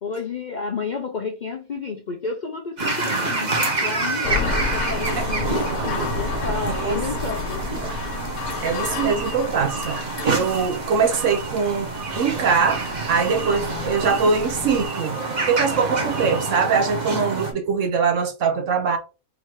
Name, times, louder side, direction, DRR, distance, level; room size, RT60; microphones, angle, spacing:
voice 1, 0.0-7.6, left 5 dB, 50° left, 0.5 m, -31 dB
sound 1, 2.8-17.5, right 3 dB, 35° right, 1.1 m, -28 dB
sound 2, 4.2-14.9, left 4 dB, 85° left, 1.2 m, -31 dB
sound 3, 4.7-16.6, right 5 dB, 85° right, 0.3 m, -37 dB
voice 2, 8.6-10.0 10.2-11.9 12.1-12.8 13.1-15.2 15.5-19.0, right 5 dB, 65° right, 1.2 m, -22 dB
3.8 x 2.9 x 4.6 m
omnidirectional pair, 1.5 m